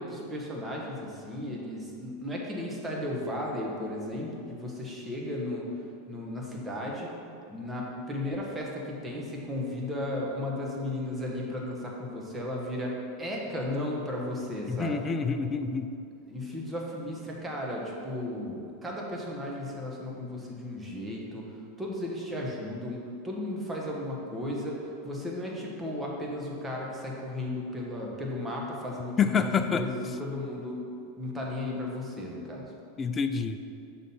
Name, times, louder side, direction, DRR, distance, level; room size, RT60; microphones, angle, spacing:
voice 1, 0.0-5.7 6.1-7.1 7.5-15.1 16.3-30.8 31.2-32.7, left 1 dB, 15° right, -2 dB, 1.4 m, -35 dB
voice 2, 14.7-15.9 29.2-29.9 33.0-33.6, left 6 dB, 25° left, 8 dB, 0.4 m, -27 dB
6.1 x 4.0 x 5.6 m, 2.6 s
hypercardioid pair, 95°, 0 cm